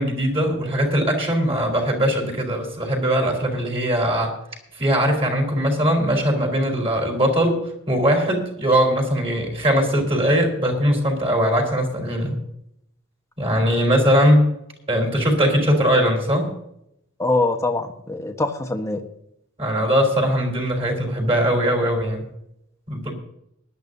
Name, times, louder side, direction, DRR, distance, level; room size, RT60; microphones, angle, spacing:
voice 1, 0.0-4.3 4.7-7.6 7.9-12.4 13.4-14.5 14.9-16.5 19.6-22.2 22.9-23.1, equal, 25° right, 2 dB, 4.3 m, -20 dB
voice 2, 17.2-19.0, left 2 dB, 15° left, 4 dB, 1.2 m, -23 dB
20.0 x 12.0 x 2.7 m, 0.78 s
head